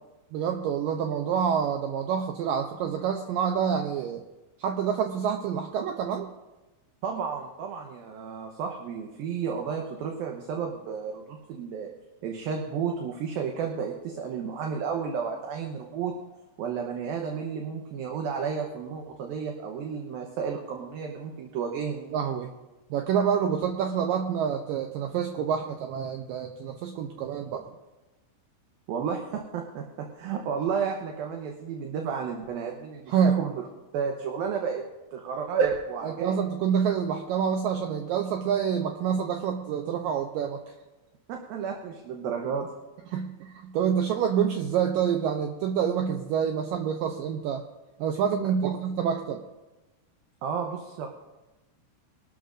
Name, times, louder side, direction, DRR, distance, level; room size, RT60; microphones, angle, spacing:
voice 1, 0.3-4.2 4.6-6.3 22.1-22.5 22.9-27.7 33.1-33.4 36.0-40.7 43.1-47.6 48.0-49.4, right 7 dB, 90° right, 4 dB, 2.0 m, -27 dB
voice 2, 7.0-11.9 12.2-16.1 16.6-22.1 28.9-29.8 30.2-33.6 33.9-34.8 35.1-36.4 41.3-42.7 50.4-51.1, right 6 dB, 70° right, 2 dB, 2.5 m, -32 dB
24.0 x 12.5 x 2.6 m, 1.1 s
omnidirectional pair, 4.9 m